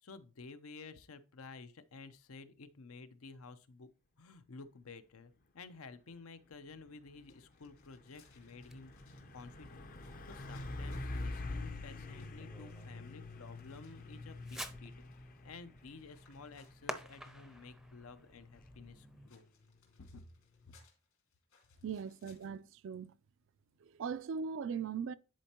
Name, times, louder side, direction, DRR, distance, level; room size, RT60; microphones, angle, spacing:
voice 1, 0.0-3.9 4.2-8.9 9.3-9.9 10.3-14.9 15.4-19.4 20.0-20.2 20.7-20.8, left 4 dB, 80° left, 0.7 m, -52 dB
Truck, 6.6-20.8, left 2 dB, 40° left, 0.6 m, -47 dB
sound 1, 7.3-17.5 19.3-22.7, left 6 dB, 65° left, 2.5 m, -70 dB
Fireworks, 8.6-19.3, right 1 dB, ahead, 0.5 m, -52 dB
voice 2, 21.8-23.1 23.8-25.2, right 6 dB, 60° right, 0.4 m, -39 dB
10.5 x 4.3 x 2.9 m
head